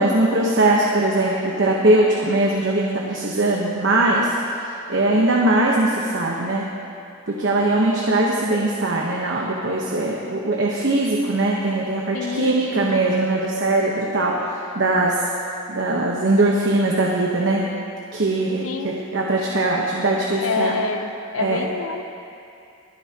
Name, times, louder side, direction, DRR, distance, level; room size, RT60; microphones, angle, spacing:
voice 1, 0.0-4.3 4.9-6.7 7.3-15.3 15.7-17.6 18.1-20.7 21.4-21.7, right 2 dB, 60° right, -2 dB, 1.0 m, -20 dB
voice 2, 12.1-13.1 18.6-19.1 20.4-22.0, left 4 dB, 75° left, 7 dB, 0.7 m, -27 dB
25.0 x 9.3 x 2.9 m, 2.6 s
head